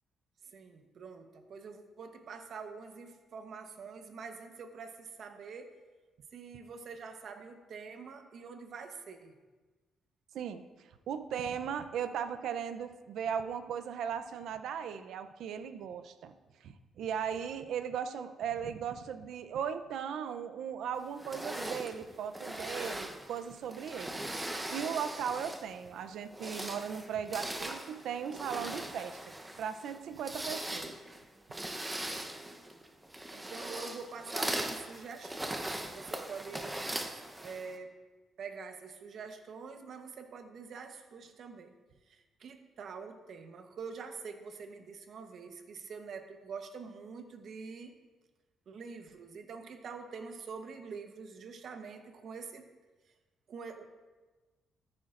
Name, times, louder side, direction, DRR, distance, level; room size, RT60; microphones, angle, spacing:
voice 1, 0.5-5.7 6.3-9.4 31.8-32.3 33.3-38.0 38.4-41.7 42.1-47.9 48.7-52.6 53.5-53.8, right 5 dB, 60° right, 6 dB, 1.0 m, -46 dB
voice 2, 10.3-16.3 16.6-24.2 24.7-29.2 29.6-30.9, right 8 dB, 75° right, 10 dB, 0.6 m, -37 dB
sound 1, 21.2-25.8 26.2-37.8, right 1 dB, 10° right, 0.9 m, -40 dB
14.0 x 8.7 x 2.5 m, 1.3 s
cardioid pair, 90°, 0 cm